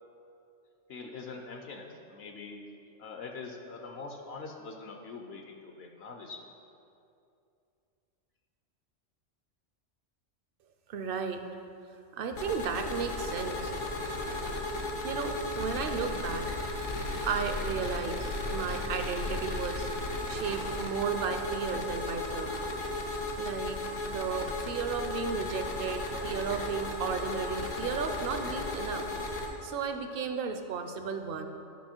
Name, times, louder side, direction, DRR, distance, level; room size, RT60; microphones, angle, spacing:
voice 1, 0.9-2.6 3.0-6.4, left 4 dB, 60° left, 3 dB, 0.9 m, -43 dB
voice 2, 10.9-11.4 12.1-13.7 15.0-16.5 17.2-19.9 20.3-22.5 23.4-29.1 29.6-31.5, right 6 dB, 55° right, 7 dB, 0.7 m, -34 dB
sound 1, 12.4-29.5, left 2 dB, 80° left, 1.3 m, -35 dB
10.5 x 5.6 x 4.4 m, 2.6 s
omnidirectional pair, 1.3 m